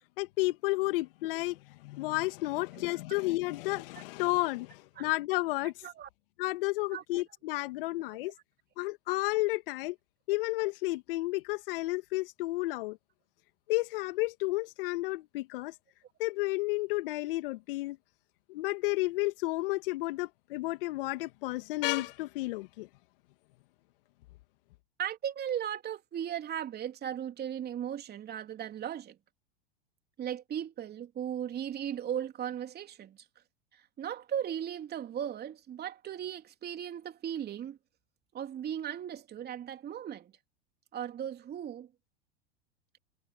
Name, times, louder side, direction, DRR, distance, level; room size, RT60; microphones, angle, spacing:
voice 1, 0.2-5.7 6.4-8.3 8.8-10.0 10.3-13.0 13.7-15.7 16.2-18.0 18.5-22.9, left 20 dB, 65° left, 2.3 m, -32 dB
voice 2, 6.9-7.2 25.0-29.2 30.2-33.2 33.7-37.8 38.3-40.3 40.9-41.9, right 9 dB, 30° right, 3.3 m, -37 dB
hypercardioid pair, 95°, 30 cm